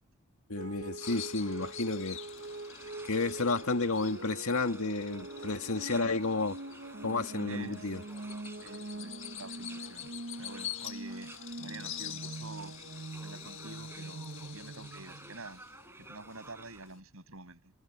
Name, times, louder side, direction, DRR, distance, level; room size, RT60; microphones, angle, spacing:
voice 1, 0.5-2.2 3.0-6.6 7.0-8.0, left 3 dB, 80° left, 2.0 m, -31 dB
sound 1, 0.6-15.5, right 2 dB, 55° right, 0.8 m, -44 dB
Bird vocalization bird call bird song, 1.0-17.0, left 11 dB, 60° left, 1.6 m, -47 dB
sound 2, 1.0-16.9, right 2 dB, 10° right, 5.7 m, -55 dB
voice 2, 7.5-7.9 8.6-10.1 10.4-12.8 13.2-15.6 16.0-17.7, right 3 dB, 75° right, 7.1 m, -48 dB
head